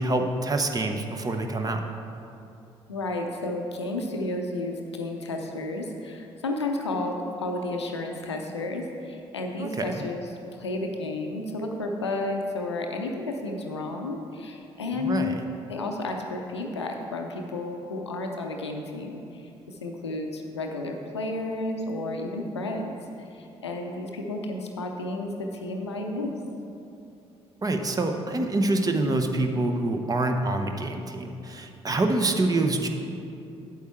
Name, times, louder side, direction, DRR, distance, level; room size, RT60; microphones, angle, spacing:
voice 1, 0.0-1.8 9.6-10.0 14.9-15.3 27.6-32.9, right 2 dB, 25° right, 5 dB, 0.9 m, -26 dB
voice 2, 2.9-15.4 15.7-26.3, left 2 dB, 85° left, 3 dB, 0.6 m, -32 dB
8.2 x 8.0 x 4.5 m, 2.7 s
figure-of-eight pair, 45°, 14 cm